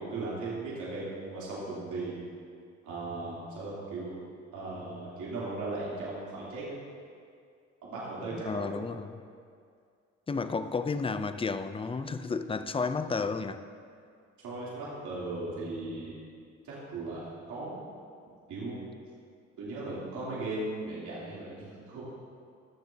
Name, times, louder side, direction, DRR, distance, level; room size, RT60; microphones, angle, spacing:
voice 1, 0.0-2.2 2.8-4.1 4.5-6.7 7.8-8.7 14.4-16.2 16.6-17.8 18.5-18.8 19.6-22.0, right 2 dB, 80° right, -8 dB, 3.1 m, -37 dB
voice 2, 8.4-9.2 10.3-13.6, left 4 dB, 20° left, 10 dB, 0.5 m, -32 dB
21.0 x 7.4 x 2.8 m, 2.3 s
cardioid pair, 90°, 30 cm